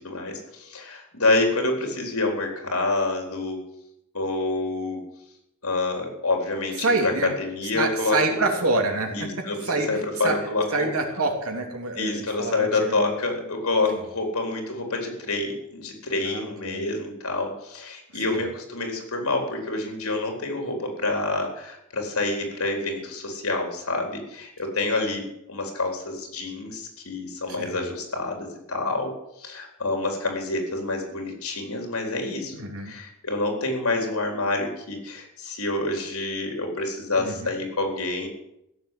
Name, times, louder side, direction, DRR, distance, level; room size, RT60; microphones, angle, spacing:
voice 1, 0.0-3.6 4.1-5.0 5.6-8.4 9.1-10.9 12.0-38.3, left 2 dB, 85° left, 3 dB, 4.2 m, -27 dB
voice 2, 6.8-7.3 7.7-10.4 10.7-13.0 13.9-14.0 16.2-16.8 18.3-18.4 27.5-27.8 32.5-32.9 37.2-37.5, right 3 dB, 85° right, 2 dB, 3.1 m, -27 dB
16.0 x 7.7 x 9.2 m, 0.83 s
head